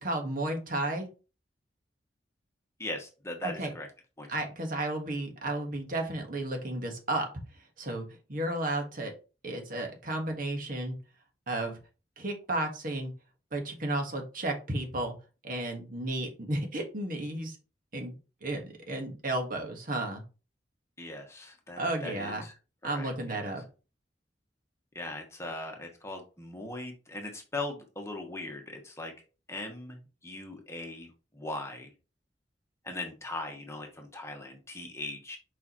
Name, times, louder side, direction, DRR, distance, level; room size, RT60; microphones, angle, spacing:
voice 1, 0.0-1.1 3.4-3.7 4.3-7.3 7.8-9.1 9.4-11.0 11.5-11.8 12.2-13.1 13.5-15.1 15.4-17.6 17.9-18.1 18.4-20.2 21.8-22.4 22.8-23.6, right 1 dB, 50° right, 3 dB, 1.5 m, -33 dB
voice 2, 2.8-3.9 4.2-4.4 21.0-22.5 22.8-23.5 24.9-29.1 29.5-31.1 31.3-31.9 32.8-35.4, left 2 dB, 15° left, 3 dB, 1.2 m, -39 dB
6.7 x 4.9 x 3.0 m, 0.33 s
head